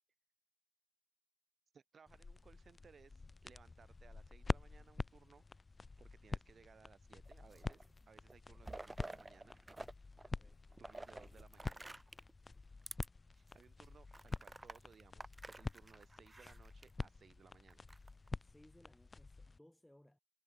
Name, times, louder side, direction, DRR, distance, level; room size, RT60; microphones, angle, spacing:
voice 1, 1.7-5.4 6.0-9.6 10.8-11.9 13.3-17.8, right 6 dB, 55° right, 3.9 m, -64 dB
sound 1, 2.1-19.6, left 3 dB, 35° left, 1.5 m, -47 dB
sound 2, 7.3-7.9 8.3-9.9 10.2-12.3 12.8-13.1 13.5-13.6 14.1-16.9 17.7-18.3, right 2 dB, 20° right, 1.1 m, -51 dB
voice 2, 18.4-20.2, left 1 dB, 5° left, 4.9 m, -65 dB
cardioid pair, 60°, 0 cm